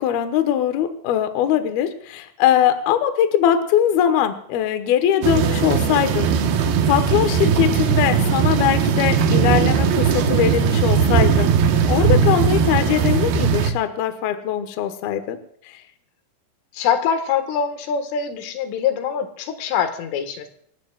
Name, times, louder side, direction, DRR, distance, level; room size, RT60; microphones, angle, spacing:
voice 1, 0.0-6.4 6.9-11.5 11.9-15.4, left 10 dB, 70° left, 8 dB, 2.7 m, -21 dB
sound 1, 5.2-13.7, right 6 dB, 65° right, 2.7 m, -18 dB
voice 2, 16.7-20.5, left 7 dB, 85° left, 7 dB, 4.1 m, -24 dB
26.0 x 15.0 x 2.4 m, 0.65 s
omnidirectional pair, 5.5 m